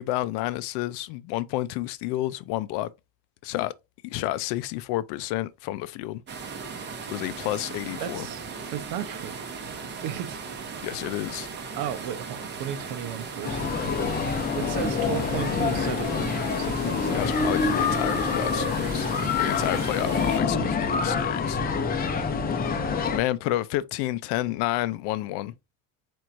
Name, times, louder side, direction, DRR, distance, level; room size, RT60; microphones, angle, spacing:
voice 1, 0.0-2.9 3.4-3.7 4.0-6.2 7.1-8.3 10.8-11.5 17.1-19.1 19.4-21.6 23.0-25.5, left 15 dB, 80° left, 0.6 m, -30 dB
sound 1, 6.3-20.4, right 5 dB, 25° right, 0.7 m, -37 dB
voice 2, 8.0-9.4 10.0-10.4 11.8-14.2 14.5-17.2, right 10 dB, 75° right, 0.9 m, -35 dB
sound 2, 13.4-23.2, left 5 dB, 25° left, 0.6 m, -26 dB
4.5 x 4.4 x 2.5 m
cardioid pair, 160°, 40 cm